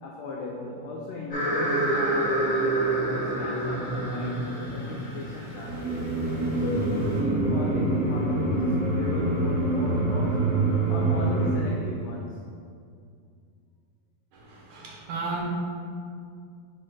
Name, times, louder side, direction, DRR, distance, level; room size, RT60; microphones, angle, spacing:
voice 1, 0.0-6.0 6.6-10.5 10.9-12.4, left 2 dB, 80° left, -2 dB, 1.5 m, -36 dB
sound 1, 1.3-7.1, right 2 dB, 55° left, 0.5 m, -28 dB
sound 2, 5.6-11.5, right 2 dB, 45° right, 1.2 m, -25 dB
voice 2, 14.3-15.4, right 3 dB, 70° right, -3 dB, 2.0 m, -34 dB
5.1 x 3.4 x 5.6 m, 2.3 s
omnidirectional pair, 3.5 m